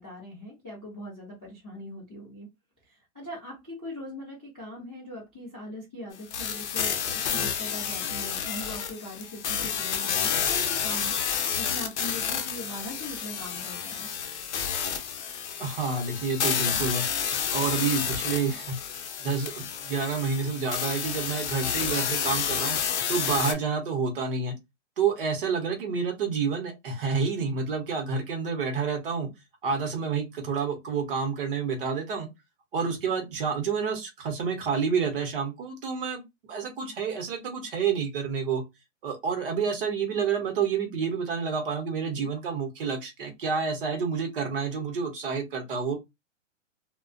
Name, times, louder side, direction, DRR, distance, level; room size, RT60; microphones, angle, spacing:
voice 1, 0.0-2.5 2.9-11.1 11.6-14.1, left 1 dB, 5° left, 0.3 m, -41 dB
sound 1, 6.3-23.5, left 7 dB, 60° left, 0.6 m, -30 dB
voice 2, 15.6-17.1 17.5-18.7 19.2-22.8 23.1-24.5 25.0-29.3 29.6-32.3 32.7-36.2 36.5-38.6 39.0-46.0, right 5 dB, 45° right, 0.8 m, -29 dB
2.4 x 2.1 x 2.4 m
hypercardioid pair, 165°, 38 cm